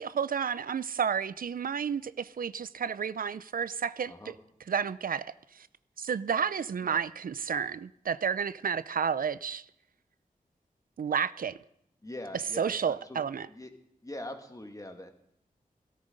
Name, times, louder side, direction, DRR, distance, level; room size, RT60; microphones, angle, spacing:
voice 1, 0.0-4.4 4.7-5.7 6.0-9.6 11.0-11.6 12.6-13.5, right 7 dB, 75° right, 0.5 m, -31 dB
voice 2, 6.6-7.0 12.0-13.2 13.5-13.7 14.0-15.1, left 1 dB, 25° left, 2.1 m, -43 dB
17.0 x 13.5 x 5.2 m
wide cardioid pair, 80°, 15 cm